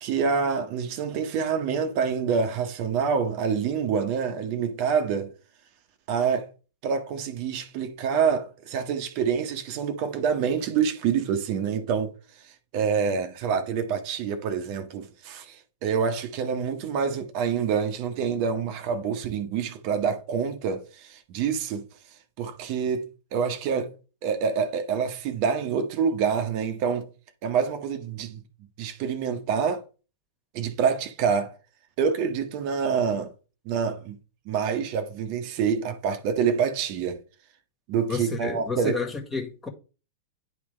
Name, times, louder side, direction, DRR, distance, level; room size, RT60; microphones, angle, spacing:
voice 1, 0.0-5.3 6.1-6.5 6.8-12.1 12.7-21.9 22.4-23.9 24.2-27.1 27.4-28.4 28.8-29.8 30.5-31.5 32.0-33.3 33.6-34.2 34.5-37.2 37.9-39.0, right 6 dB, 45° right, 1.0 m, -26 dB
voice 2, 38.1-39.7, left 5 dB, 15° left, 1.7 m, -31 dB
10.0 x 3.6 x 3.3 m
figure-of-eight pair, 100°, 0 cm